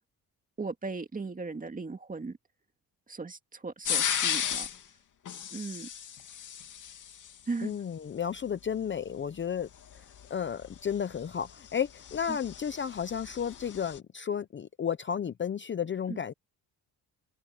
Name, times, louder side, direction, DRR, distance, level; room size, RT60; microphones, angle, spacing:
voice 1, 0.6-2.4 3.1-4.7 5.5-5.9 7.5-7.8 12.3-12.4 16.1-16.2, right 3 dB, 20° right, 2.1 m, -37 dB
sound 1, 3.9-4.8 5.3-7.3 9.9-14.0, left 8 dB, 55° left, 2.6 m, -35 dB
voice 2, 7.6-10.0 10.3-16.3, left 8 dB, 30° left, 0.6 m, -33 dB
cardioid pair, 125°, 38 cm